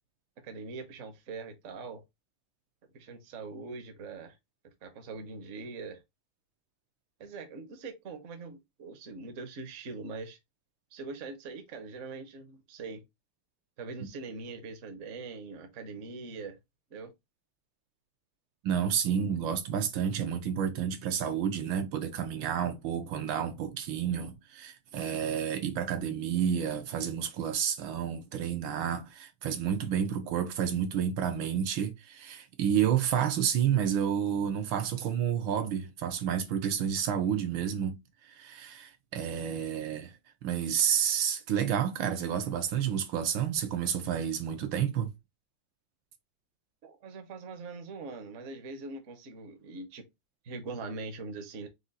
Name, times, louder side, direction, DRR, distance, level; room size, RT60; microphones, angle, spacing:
voice 1, 0.4-2.0 2.9-4.4 4.8-6.0 7.2-10.4 10.9-13.0 13.8-16.6 16.9-17.1 46.8-50.1 50.4-51.7, right 3 dB, 50° right, 0.9 m, -42 dB
voice 2, 18.6-40.1 40.4-45.1, right 8 dB, 70° right, 1.3 m, -30 dB
5.0 x 2.3 x 3.9 m
omnidirectional pair, 2.4 m